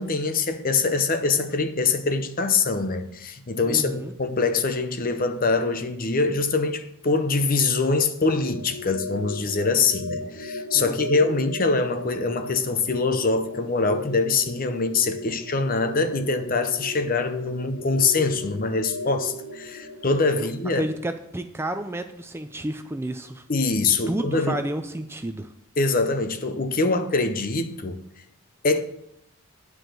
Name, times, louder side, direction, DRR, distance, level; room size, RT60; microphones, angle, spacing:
voice 1, 0.0-20.8 23.5-24.6 25.8-28.0 28.6-28.8, left 3 dB, 40° left, 0.7 m, -24 dB
voice 2, 3.6-4.1 10.7-11.3 18.4-18.6 20.4-20.5 20.8-23.4 24.1-25.5, right 1 dB, 10° right, 0.4 m, -31 dB
sound 1, 8.2-20.1, left 2 dB, 80° left, 1.6 m, -37 dB
9.2 x 4.8 x 7.5 m
head